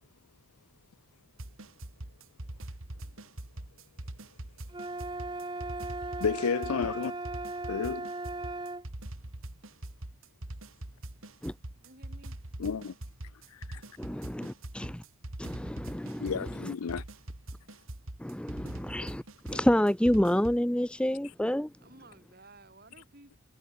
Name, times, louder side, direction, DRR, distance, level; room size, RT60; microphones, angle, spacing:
sound 1, 1.4-20.6, right 1 dB, 70° right, 2.5 m, -43 dB
sound 2, 4.7-8.9, right 2 dB, 20° right, 1.4 m, -37 dB
voice 1, 6.2-7.1 7.7-8.1 12.6-12.9 13.7-13.8 16.2-17.0 19.5-19.6, left 6 dB, 85° left, 0.5 m, -31 dB
voice 2, 11.8-12.4 15.9-16.9 21.8-23.4, right 2 dB, 45° right, 5.0 m, -56 dB
voice 3, 14.0-15.0 15.4-16.7 18.2-19.2 19.5-21.7, equal, 5° left, 0.5 m, -29 dB
head